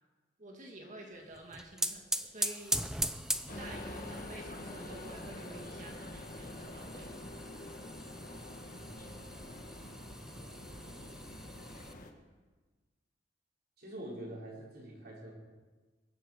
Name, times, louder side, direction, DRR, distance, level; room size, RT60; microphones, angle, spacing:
voice 1, 0.4-3.2 3.5-7.1, right 1 dB, 40° right, 1 dB, 2.1 m, -50 dB
sound 1, 1.3-11.9, right 1 dB, 5° right, 0.5 m, -40 dB
sound 2, 3.5-12.1, left 1 dB, 45° left, 1.5 m, -46 dB
voice 2, 8.8-9.3 10.3-10.9 13.8-15.3, right 1 dB, 55° right, -4 dB, 5.4 m, -47 dB
22.5 x 8.0 x 6.7 m, 1.3 s
head